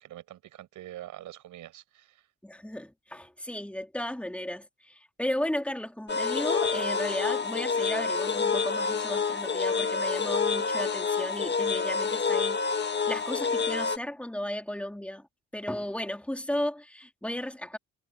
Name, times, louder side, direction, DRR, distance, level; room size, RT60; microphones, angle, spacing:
voice 1, 0.0-2.3, right 13 dB, 80° right, 6.1 m, -45 dB
voice 2, 2.4-12.6 12.9-15.3 15.5-17.8, left 1 dB, 5° left, 3.5 m, -34 dB
sound 1, 6.1-14.0, left 5 dB, 35° left, 1.8 m, -28 dB
cardioid pair, 90°, 30 cm